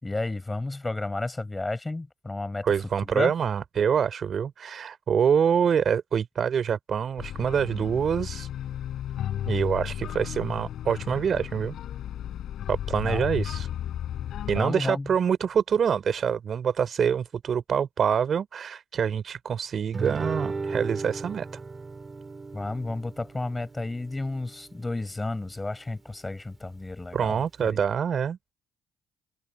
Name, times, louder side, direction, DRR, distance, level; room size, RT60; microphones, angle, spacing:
voice 1, 0.0-2.7 3.0-3.3 13.0-13.3 14.5-15.1 22.5-27.8, left 2 dB, 20° left, 6.0 m, -32 dB
voice 2, 2.6-8.5 9.4-11.8 12.7-13.7 14.5-21.5 27.1-28.4, right 7 dB, 50° right, 3.8 m, -26 dB
sound 1, 7.2-14.6, left 11 dB, 60° left, 6.6 m, -34 dB
Guitar, 19.9-25.0, right 4 dB, 30° right, 4.5 m, -36 dB
hypercardioid pair, 50°, 0 cm